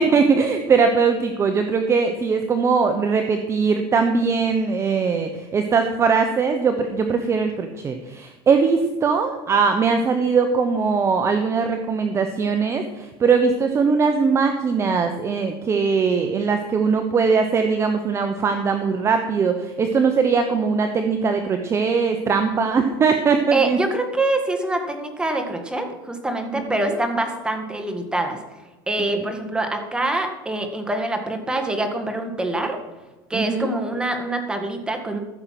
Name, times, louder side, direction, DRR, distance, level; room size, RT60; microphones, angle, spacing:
voice 1, 0.0-23.8 33.3-33.7, right 5 dB, 25° right, 6 dB, 0.9 m, -20 dB
voice 2, 23.5-28.4 28.9-32.8 33.3-35.2, right 2 dB, 5° right, 5 dB, 1.7 m, -25 dB
14.5 x 6.6 x 5.9 m, 1.2 s
supercardioid pair, 135°, 12 cm